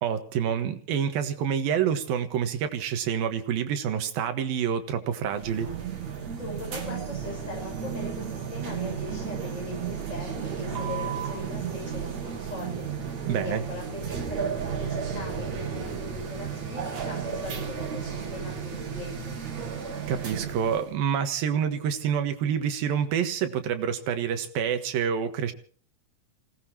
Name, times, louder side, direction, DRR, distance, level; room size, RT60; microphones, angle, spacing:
voice 1, 0.0-5.7 13.3-13.6 20.1-25.5, right 8 dB, 80° right, 8 dB, 3.2 m, -27 dB
sound 1, 5.3-20.9, right 7 dB, 50° right, 3.7 m, -33 dB
voice 2, 6.3-12.9 13.3-19.4, left 2 dB, 20° left, -1 dB, 7.3 m, -40 dB
27.0 x 18.0 x 3.0 m, 0.43 s
omnidirectional pair, 4.2 m